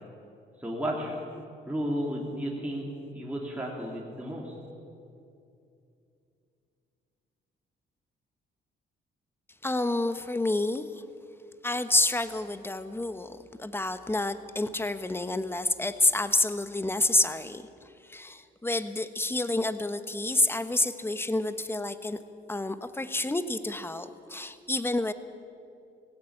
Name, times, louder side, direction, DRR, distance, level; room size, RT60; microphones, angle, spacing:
voice 1, 0.6-1.2 1.7-2.8 3.1-4.5, equal, 5° right, -3 dB, 3.1 m, -33 dB
voice 2, 9.6-11.0 11.6-17.6 18.0-22.2 22.5-25.1, left 2 dB, 10° left, 11 dB, 1.1 m, -28 dB
18.0 x 17.0 x 8.7 m, 2.6 s
cardioid pair, 90°, 20 cm